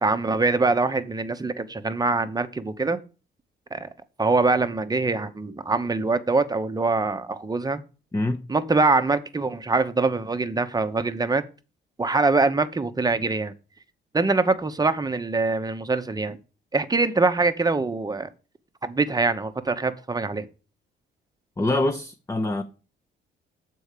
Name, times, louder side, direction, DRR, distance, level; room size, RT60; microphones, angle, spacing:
voice 1, 0.0-3.0 3.7-3.9 4.2-7.8 8.5-11.4 12.0-13.5 14.1-16.4 16.7-18.3 18.8-20.5, right 3 dB, 20° right, 0.9 m, -23 dB
voice 2, 8.1-8.5 21.6-22.6, left 2 dB, 15° left, 0.8 m, -25 dB
7.0 x 4.6 x 6.6 m
cardioid pair, 90°, 20 cm